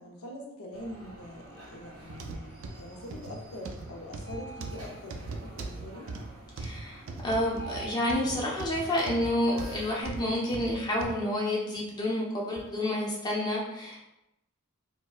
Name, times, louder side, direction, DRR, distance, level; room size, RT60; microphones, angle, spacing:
voice 1, 0.0-6.1, left 1 dB, 90° left, 0 dB, 0.6 m, -44 dB
sound 1, 0.7-10.0, right 3 dB, 85° right, 1.3 m, -47 dB
sound 2, 2.1-11.2 11.8-11.9 12.6-12.7, right 3 dB, 65° right, 0.4 m, -40 dB
voice 2, 6.6-14.1, left 1 dB, 20° left, -4 dB, 0.7 m, -29 dB
4.5 x 2.2 x 2.3 m, 0.90 s
head